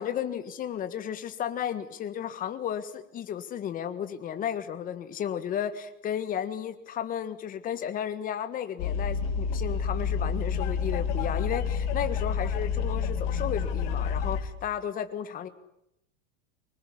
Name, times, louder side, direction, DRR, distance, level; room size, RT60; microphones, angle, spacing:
voice 1, 0.0-15.5, left 9 dB, 20° left, 11 dB, 1.6 m, -33 dB
sound 1, 8.8-14.4, left 6 dB, 45° left, 2.9 m, -29 dB
25.0 x 20.0 x 9.9 m, 0.79 s
supercardioid pair, 170°, 39 cm